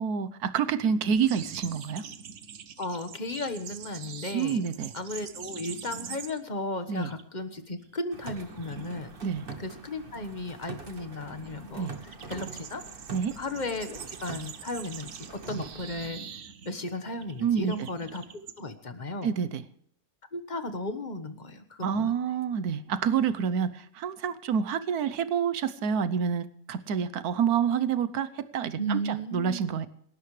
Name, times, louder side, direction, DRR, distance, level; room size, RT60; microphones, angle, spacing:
voice 1, 0.0-2.0 4.3-4.9 6.9-7.1 9.2-9.4 11.8-11.9 13.1-13.3 17.4-17.7 19.2-19.6 21.8-23.7 24.0-29.9, right 7 dB, 90° right, 14 dB, 1.4 m, -28 dB
sound 1, 1.2-6.6 6.9-7.2 7.6-18.6, right 7 dB, 60° right, 1.2 m, -44 dB
voice 2, 2.8-4.6 4.9-9.1 9.6-12.8 13.4-15.1 15.5-16.2 16.6-18.2 18.6-19.3 20.3-22.2 28.8-29.7, left 1 dB, 30° left, 9 dB, 1.4 m, -35 dB
sound 2, 8.1-16.1, right 3 dB, 40° right, 1.7 m, -45 dB
27.5 x 12.5 x 3.3 m, 0.65 s
omnidirectional pair, 1.6 m